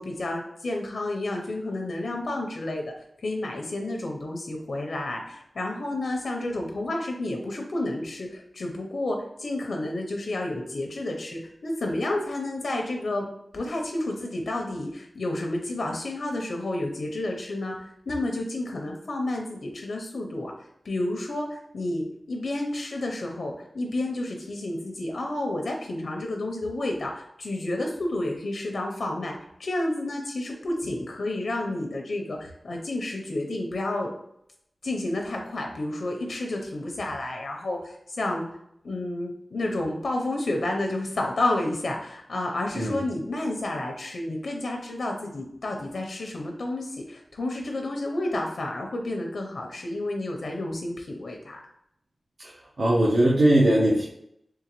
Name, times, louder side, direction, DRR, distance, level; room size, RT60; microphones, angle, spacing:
voice 1, 0.0-2.8 3.2-13.3 13.5-20.5 20.8-29.3 29.6-34.1 34.8-38.5 38.8-51.6, left 1 dB, 85° left, 2 dB, 0.6 m, -30 dB
voice 2, 52.8-54.1, right 1 dB, 75° right, -6 dB, 0.7 m, -20 dB
3.7 x 3.5 x 3.0 m, 0.74 s
wide cardioid pair, 95°, 0 cm